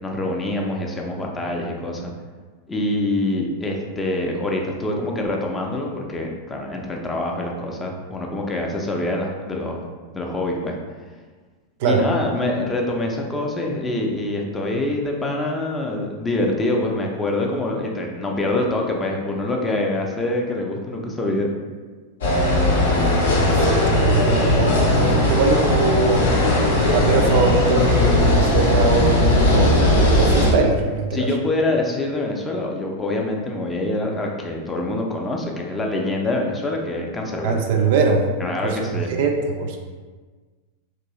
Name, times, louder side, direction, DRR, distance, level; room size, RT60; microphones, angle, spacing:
voice 1, 0.0-2.1 2.7-10.8 11.8-21.5 31.1-37.6 38.4-39.2, left 1 dB, 15° left, 0 dB, 0.4 m, -25 dB
sound 1, 22.2-30.5, left 2 dB, 60° left, 0.6 m, -18 dB
voice 2, 23.4-26.2 26.9-31.3 37.4-38.2 38.6-38.8 39.2-39.8, right 4 dB, 50° right, 3 dB, 0.3 m, -21 dB
3.0 x 2.6 x 2.8 m, 1.4 s
figure-of-eight pair, 90°, 0 cm